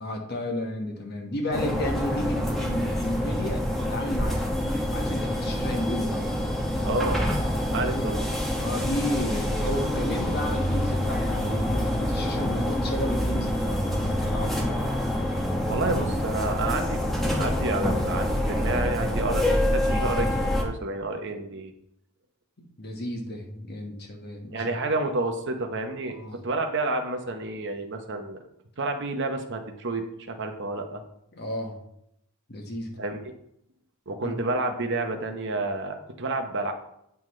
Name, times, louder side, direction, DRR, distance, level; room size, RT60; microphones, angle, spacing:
voice 1, 0.0-4.4 4.9-6.3 7.7-8.1 8.6-14.9 22.6-24.7 26.1-26.4 31.3-31.8 32.5-33.0 34.2-34.4, left 1 dB, 45° left, 1 dB, 1.4 m, -32 dB
sound 1, 1.5-20.6, left 1 dB, ahead, 1.1 m, -26 dB
voice 2, 6.8-7.3 7.7-8.2 15.7-21.7 24.5-28.4 28.8-31.0 33.0-33.3 34.1-36.7, right 2 dB, 55° right, 5 dB, 0.9 m, -30 dB
8.9 x 5.7 x 3.2 m, 0.78 s
head